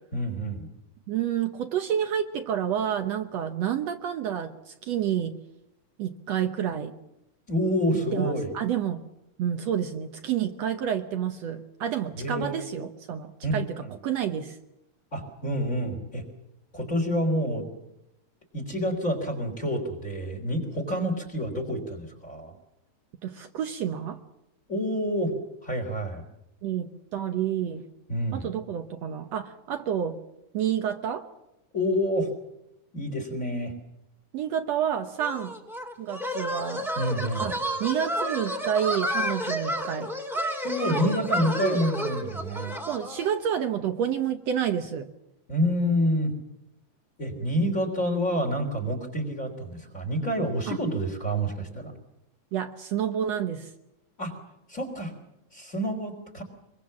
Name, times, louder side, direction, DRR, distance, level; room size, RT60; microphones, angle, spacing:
voice 1, 0.1-0.7 7.5-8.5 12.2-12.6 13.4-13.9 15.1-16.2 16.7-17.7 18.5-22.5 24.7-25.4 25.6-26.2 28.1-28.5 31.7-32.3 32.9-33.7 37.0-37.6 40.6-42.8 45.5-46.3 47.2-51.9 54.2-54.4 54.7-55.1 55.5-56.4, equal, 25° left, 5 dB, 3.4 m, -28 dB
voice 2, 1.1-5.4 6.0-7.0 8.1-9.0 9.4-14.6 23.2-24.2 26.6-27.8 28.3-30.2 30.5-31.2 34.3-35.5 36.0-36.9 37.4-40.1 41.6-41.8 42.9-45.1 50.7-50.8 52.5-53.7, right 9 dB, 65° right, 7 dB, 2.0 m, -29 dB
sound 1, 35.2-43.3, equal, ahead, 2.2 m, -31 dB
24.0 x 22.5 x 7.4 m, 0.87 s
omnidirectional pair, 3.4 m